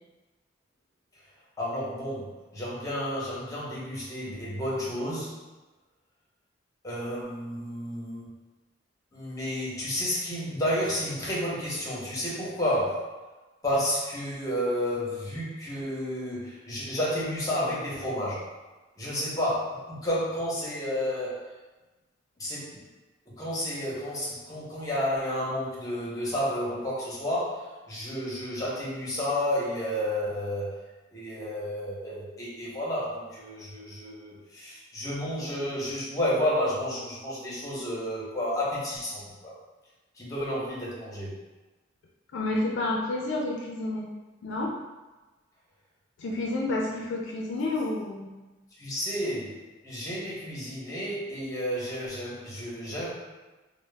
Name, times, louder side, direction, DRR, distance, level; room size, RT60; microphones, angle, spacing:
voice 1, 1.6-5.4 6.8-8.2 9.1-13.1 13.6-18.4 19.0-21.4 22.4-22.8 23.4-30.7 31.1-39.5 40.2-41.3 48.8-53.1, equal, 20° left, -6 dB, 0.7 m, -31 dB
voice 2, 42.3-44.1 44.4-44.7 46.2-48.3, left 2 dB, 65° left, -2 dB, 0.4 m, -29 dB
2.0 x 2.0 x 3.2 m, 1.2 s
head